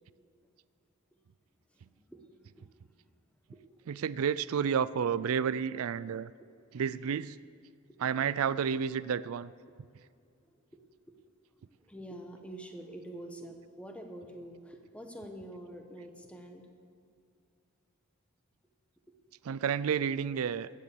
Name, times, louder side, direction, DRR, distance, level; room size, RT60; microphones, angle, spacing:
voice 1, 1.7-2.7 3.0-3.1 3.5-3.9 10.5-10.8 11.7-16.7, right 1 dB, 5° left, 4 dB, 1.1 m, -47 dB
voice 2, 3.9-6.3 6.7-7.4 8.0-9.5 19.4-20.7, right 7 dB, 80° right, 18 dB, 0.4 m, -30 dB
15.0 x 9.7 x 6.9 m, 2.4 s
head